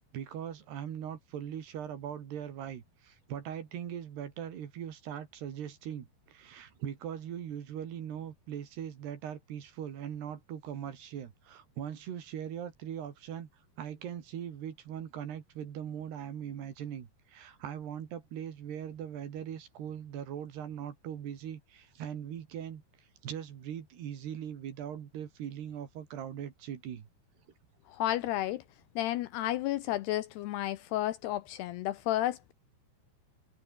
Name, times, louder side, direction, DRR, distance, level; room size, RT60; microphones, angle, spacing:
voice 1, 0.1-13.5 13.8-27.1, right 9 dB, 65° right, 4.4 m, -40 dB
voice 2, 27.9-28.6 29.0-32.5, left 14 dB, 80° left, 2.7 m, -32 dB
omnidirectional pair, 5.2 m